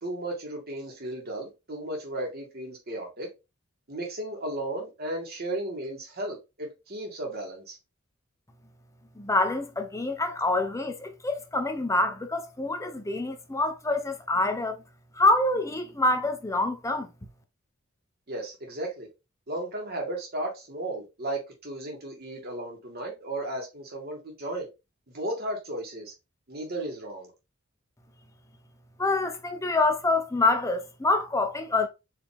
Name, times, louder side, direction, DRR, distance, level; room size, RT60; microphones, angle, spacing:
voice 1, 0.0-3.3 3.9-7.8 18.3-19.1 19.5-24.7 25.1-26.1 26.5-27.3, right 1 dB, 50° right, 1.6 m, -35 dB
voice 2, 9.2-14.8 15.1-17.1 29.0-31.9, left 2 dB, 15° left, 0.7 m, -26 dB
4.9 x 2.8 x 3.4 m
head